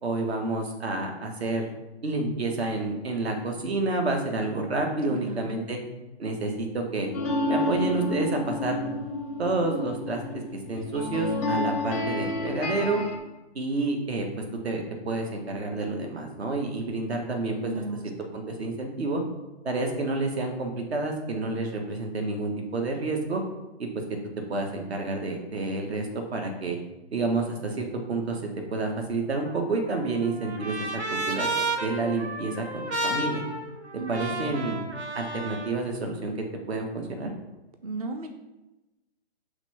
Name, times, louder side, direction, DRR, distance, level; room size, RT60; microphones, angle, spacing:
voice 1, 0.0-1.7 2.0-5.8 6.2-7.1 7.5-8.8 9.4-10.4 10.7-13.0 13.5-14.2 14.6-19.2 19.6-23.4 23.8-23.9 24.5-26.8 27.1-28.4 28.7-33.4 34.1-34.8 35.1-36.3 36.7-37.3, right 3 dB, 70° right, 3 dB, 1.6 m, -29 dB
voice 2, 5.1-5.7 17.6-18.1 34.0-34.6 37.8-38.3, right 2 dB, 35° right, 6 dB, 0.5 m, -36 dB
sound 1, 7.1-13.2, left 2 dB, 15° left, 0.5 m, -30 dB
Trumpet, 29.4-35.8, right 2 dB, 90° right, 1.2 m, -32 dB
5.8 x 3.3 x 5.7 m, 1.0 s
hypercardioid pair, 150°, 33 cm